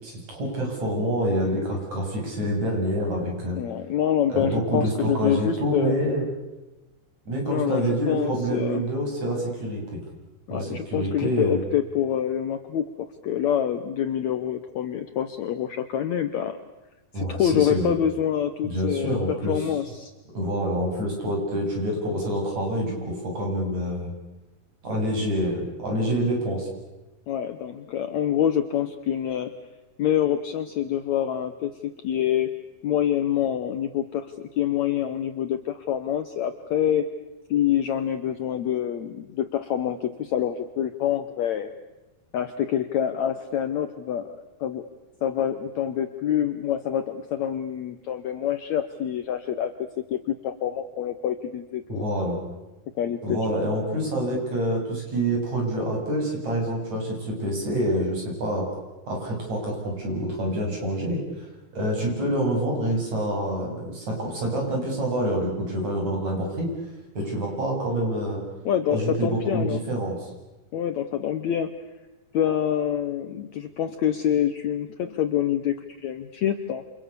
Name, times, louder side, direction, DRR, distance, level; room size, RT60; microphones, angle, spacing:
voice 1, 0.0-3.6 4.3-6.2 7.3-10.0 10.5-11.6 17.1-17.9 18.6-19.6 20.3-24.1 24.8-26.7 51.9-52.4 53.2-58.7 59.1-61.5 61.7-66.7 67.2-68.4 68.9-70.2, right 1 dB, 45° right, 0 dB, 8.9 m, -27 dB
voice 2, 3.5-5.9 7.4-8.8 10.5-16.6 17.1-19.2 19.5-20.1 27.3-29.5 30.0-37.1 37.5-41.7 42.3-44.8 45.2-49.7 50.1-52.1 53.0-53.6 68.6-69.8 70.7-71.7 72.3-76.8, left 10 dB, 85° left, 9 dB, 1.5 m, -26 dB
29.5 x 27.0 x 6.9 m, 1.1 s
omnidirectional pair, 4.7 m